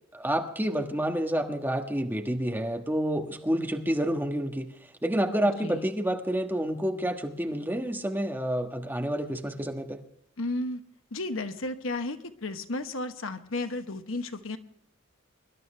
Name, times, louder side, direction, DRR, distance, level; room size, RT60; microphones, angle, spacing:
voice 1, 0.1-4.7 5.0-10.0, right 1 dB, 10° right, 3 dB, 1.4 m, -29 dB
voice 2, 10.4-10.8 11.1-14.6, left 2 dB, 85° left, 8 dB, 1.1 m, -33 dB
24.0 x 12.0 x 3.3 m, 0.73 s
head